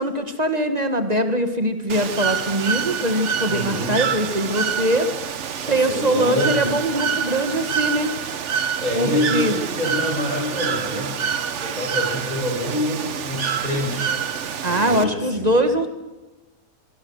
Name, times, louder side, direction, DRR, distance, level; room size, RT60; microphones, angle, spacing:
voice 1, 0.0-5.1 5.7-8.1 8.9-9.6 14.6-15.9, right 1 dB, 25° right, 7 dB, 1.6 m, -22 dB
Bird / Water, 1.9-15.0, right 7 dB, 55° right, 1.2 m, -27 dB
voice 2, 3.5-4.0 5.6-6.7 8.8-11.1 11.6-14.1 14.6-15.5, left 1 dB, 25° left, -1 dB, 7.6 m, -26 dB
24.5 x 23.0 x 6.4 m, 1.1 s
omnidirectional pair, 1.6 m